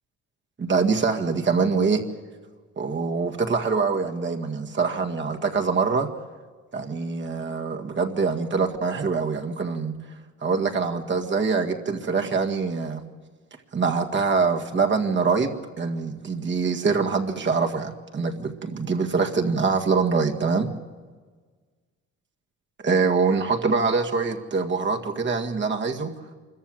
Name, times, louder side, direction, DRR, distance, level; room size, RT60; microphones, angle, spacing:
voice 1, 0.6-2.0 2.8-6.1 6.7-9.9 10.4-13.0 13.7-20.7 22.8-26.1, right 4 dB, 40° right, 3 dB, 2.0 m, -24 dB
24.5 x 14.5 x 9.0 m, 1.5 s
cardioid pair, 90°, 30 cm